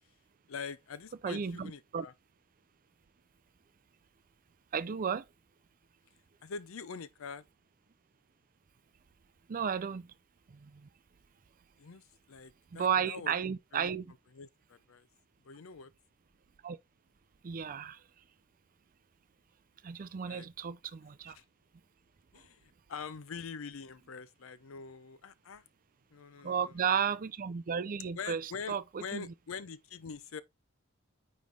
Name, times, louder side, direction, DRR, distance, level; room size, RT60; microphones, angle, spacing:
voice 1, 0.5-2.1 6.4-7.4 11.8-13.4 13.7-13.9 14.3-15.1 15.4-15.9 20.3-20.5 21.3-21.4 22.3-25.6 26.1-26.7 28.2-30.4, left 5 dB, 75° left, 0.5 m, -44 dB
voice 2, 1.2-2.1 4.7-5.3 9.5-10.1 10.5-10.9 12.7-14.1 16.6-16.8 17.4-18.0 19.8-21.4 26.4-29.3, right 7 dB, 40° right, 0.4 m, -34 dB
9.3 x 3.2 x 3.3 m
head